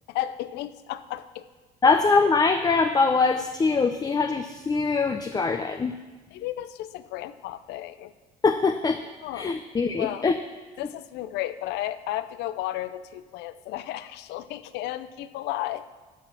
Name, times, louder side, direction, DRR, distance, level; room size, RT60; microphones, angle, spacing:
voice 1, 0.1-1.5 6.3-8.1 9.2-9.6 10.0-10.3 10.8-15.9, left 14 dB, 90° left, 14 dB, 0.6 m, -33 dB
voice 2, 1.8-5.9 8.4-9.0 9.3-10.4, left 4 dB, 25° left, 8 dB, 0.6 m, -23 dB
12.0 x 5.8 x 7.4 m, 1.3 s
cardioid pair, 110°, 17 cm